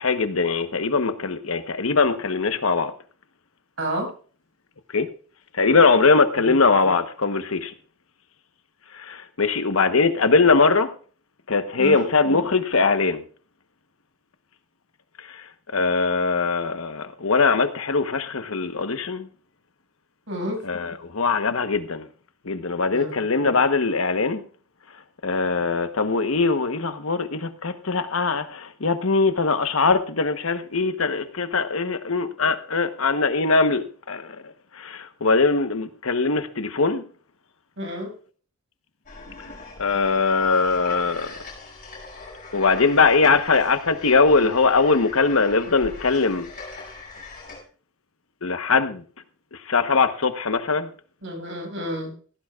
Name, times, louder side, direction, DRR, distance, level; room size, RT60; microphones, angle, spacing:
voice 1, 0.0-2.9 4.9-5.1 5.6-7.7 9.1-10.9 11.5-13.2 15.7-19.3 20.6-22.0 22.5-24.4 25.2-34.2 34.8-37.0 39.8-41.3 42.5-46.5 48.4-49.0 49.7-50.9, left 4 dB, 80° left, 9 dB, 1.1 m, -21 dB
voice 2, 3.8-4.1 6.4-6.5 11.8-12.1 20.3-20.6 22.9-23.2 37.8-38.1 51.2-52.1, equal, 60° right, 2 dB, 6.3 m, -30 dB
sound 1, 39.1-47.6, left 3 dB, 40° left, 6.9 m, -41 dB
17.0 x 15.0 x 2.4 m, 0.41 s
head